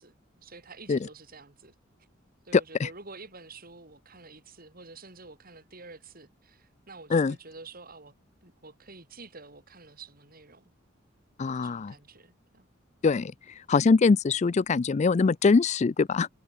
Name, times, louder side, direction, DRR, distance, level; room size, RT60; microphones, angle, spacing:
voice 1, 0.0-1.7 2.4-8.1 8.4-10.7 11.5-12.7, right 3 dB, 50° right, 7.5 m, -49 dB
voice 2, 2.5-2.9 7.1-7.3 11.4-11.9 13.0-16.3, left 4 dB, 35° left, 0.4 m, -23 dB
head